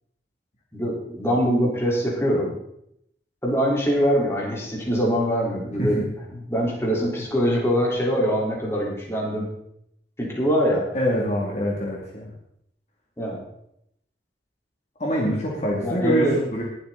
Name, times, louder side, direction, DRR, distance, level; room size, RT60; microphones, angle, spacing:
voice 1, 0.7-2.5 3.4-6.0 6.3-9.5 10.2-10.8 13.2-13.4 15.8-16.4, equal, 15° left, -3 dB, 4.2 m, -23 dB
voice 2, 10.9-12.3 15.0-16.6, equal, 40° left, -3 dB, 2.7 m, -25 dB
21.0 x 8.2 x 4.1 m, 0.74 s
head